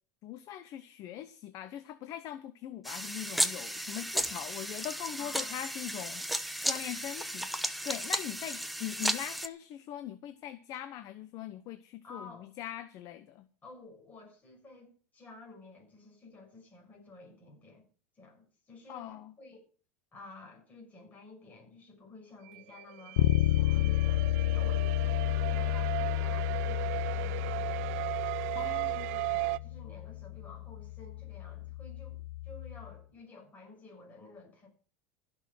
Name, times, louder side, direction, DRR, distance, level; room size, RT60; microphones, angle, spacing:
voice 1, 0.2-7.5 7.8-13.4 18.9-19.3 28.5-29.1, left 12 dB, 45° left, 1.0 m, -41 dB
sound 1, 2.8-9.5, equal, ahead, 0.9 m, -34 dB
voice 2, 5.2-5.6 12.0-12.5 13.6-17.9 18.1-19.7 20.1-34.7, left 3 dB, 20° left, 6.4 m, -52 dB
sound 2, 22.5-29.6, right 23 dB, 60° right, 0.6 m, -36 dB
Bass guitar, 23.2-33.0, left 15 dB, 80° left, 0.7 m, -31 dB
15.5 x 6.4 x 7.7 m
supercardioid pair, 135°, 8 cm